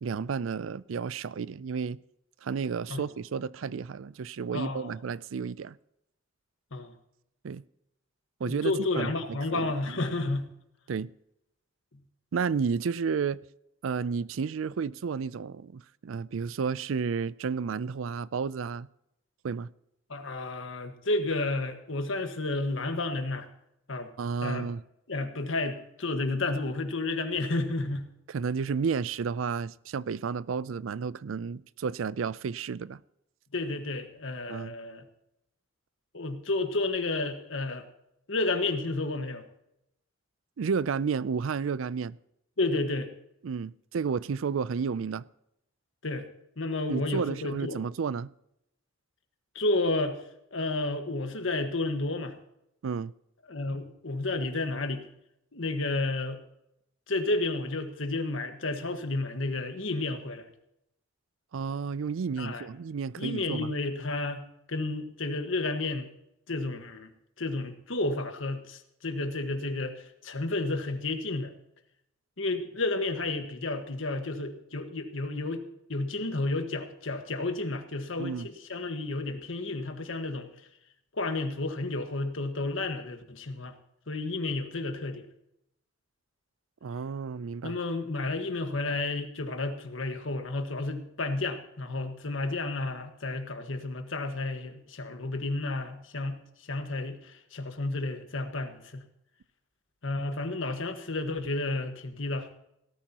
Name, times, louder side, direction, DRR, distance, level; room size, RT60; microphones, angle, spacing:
voice 1, 0.0-2.0 2.4-5.8 7.4-7.6 8.4-10.0 10.9-11.1 12.3-13.4 13.8-18.9 19.4-19.7 24.2-24.8 28.3-33.0 34.5-34.7 40.6-42.2 43.4-45.3 46.9-48.3 52.8-53.1 61.5-63.7 78.2-78.5 86.8-87.8, right 5 dB, 90° right, 0.4 m, -32 dB
voice 2, 4.5-4.9 6.7-6.9 8.4-10.5 20.1-23.5 23.9-24.1 24.4-24.7 25.1-28.1 33.5-35.0 36.1-37.9 38.3-39.4 42.6-43.1 46.0-46.3 46.6-47.8 49.5-50.2 50.5-52.3 53.5-55.0 55.5-56.4 57.1-60.5 62.4-62.7 63.2-64.4 64.7-66.1 66.5-67.1 67.4-71.5 72.4-75.6 75.9-80.5 81.1-83.7 84.1-85.2 87.6-99.0 100.0-102.5, left 2 dB, 80° left, 1.5 m, -31 dB
17.5 x 13.0 x 2.9 m
head